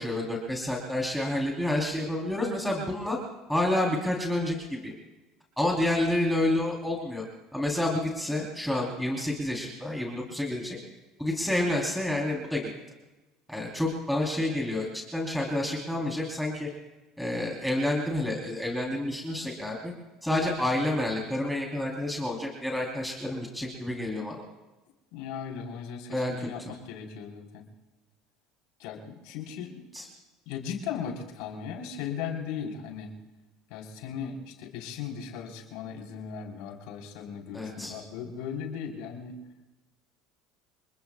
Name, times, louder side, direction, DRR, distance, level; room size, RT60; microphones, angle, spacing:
voice 1, 0.0-3.2 3.5-4.6 4.8-4.9 5.6-7.2 7.5-10.8 11.2-12.6 13.5-16.7 17.2-19.9 20.2-24.4 26.1-26.5 29.9-30.1 37.5-37.9, left 1 dB, ahead, -2 dB, 3.7 m, -29 dB
voice 2, 25.1-27.6 28.8-29.9 30.5-33.1 33.7-39.4, left 7 dB, 75° left, 0 dB, 4.0 m, -37 dB
28.0 x 21.0 x 2.4 m, 1.1 s
supercardioid pair, 90°, 0 cm